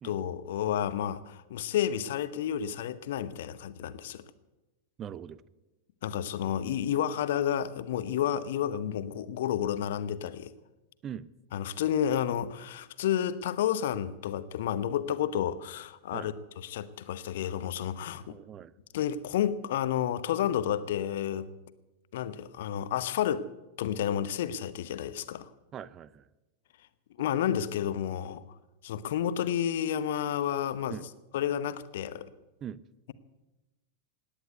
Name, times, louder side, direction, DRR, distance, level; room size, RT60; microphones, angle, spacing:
voice 1, 0.0-4.2 6.0-10.5 11.5-18.3 18.9-21.5 22.1-23.5 23.8-25.5 27.2-28.4 28.8-31.0 31.3-32.3, left 10 dB, 60° left, 15 dB, 0.9 m, -31 dB
voice 2, 5.0-5.4 11.0-11.3 16.1-16.3 18.3-18.7 25.7-26.3 30.9-31.1 32.6-32.8, right 9 dB, 30° right, 20 dB, 0.6 m, -41 dB
17.5 x 10.0 x 8.1 m, 1.1 s
figure-of-eight pair, 90°, 0 cm